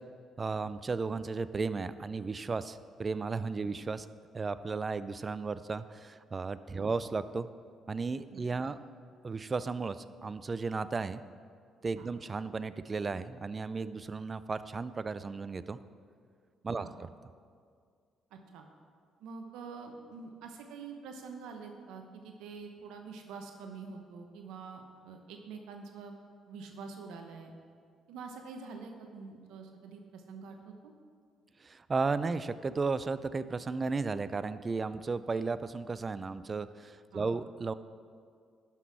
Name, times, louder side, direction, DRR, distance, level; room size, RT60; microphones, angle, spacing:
voice 1, 0.4-4.1 4.3-7.5 7.9-8.8 9.2-11.2 11.8-15.8 16.6-16.9 31.6-37.7, right 4 dB, 35° right, 14 dB, 0.4 m, -34 dB
voice 2, 18.3-18.7 19.2-26.2 26.5-27.5 28.1-30.9 37.1-37.3, right 5 dB, 80° right, 4 dB, 0.8 m, -46 dB
11.5 x 6.0 x 4.7 m, 2.2 s
supercardioid pair, 60°, 0 cm